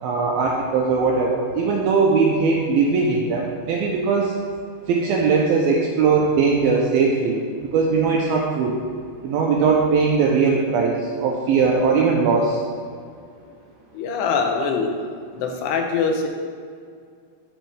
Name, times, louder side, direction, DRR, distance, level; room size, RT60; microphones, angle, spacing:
voice 1, 0.0-4.3 4.9-7.4 7.7-8.8 9.2-12.6, right 4 dB, 90° right, -1 dB, 2.1 m, -20 dB
voice 2, 13.9-15.0 15.4-16.3, left 5 dB, 80° left, 3 dB, 2.7 m, -23 dB
13.5 x 4.6 x 3.4 m, 2.2 s
omnidirectional pair, 5.0 m